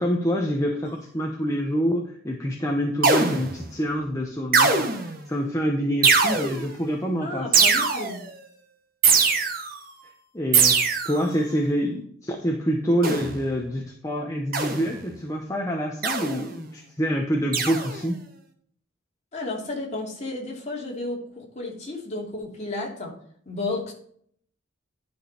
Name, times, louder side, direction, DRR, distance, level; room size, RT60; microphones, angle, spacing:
voice 1, 0.0-7.5 10.3-18.2, equal, 15° left, 1 dB, 0.9 m, -26 dB
sound 1, 3.0-3.6 4.5-5.2 6.0-6.7 7.5-8.3 9.0-9.8 10.5-11.3 13.0-13.4 14.5-15.0 16.0-16.5 17.5-18.0, right 5 dB, 45° right, 1.3 m, -21 dB
voice 2, 7.2-8.2 19.3-23.1 23.5-23.9, left 2 dB, 35° left, -2 dB, 2.8 m, -32 dB
11.0 x 5.2 x 4.3 m, 0.62 s
head